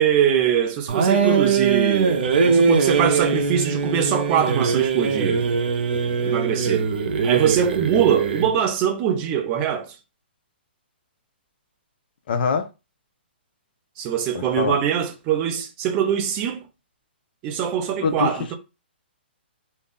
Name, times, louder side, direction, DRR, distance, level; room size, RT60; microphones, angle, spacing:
voice 1, 0.0-5.4 6.2-6.9 7.2-10.0 14.0-16.7 17.4-18.6, right 9 dB, 25° right, 0.4 m, -22 dB
sound 1, 0.9-8.6, right 5 dB, 60° right, 0.6 m, -21 dB
voice 2, 12.3-12.7 14.3-14.8 18.0-18.3, left 5 dB, 55° left, 0.4 m, -23 dB
2.5 x 2.2 x 3.4 m
hypercardioid pair, 155°, 6 cm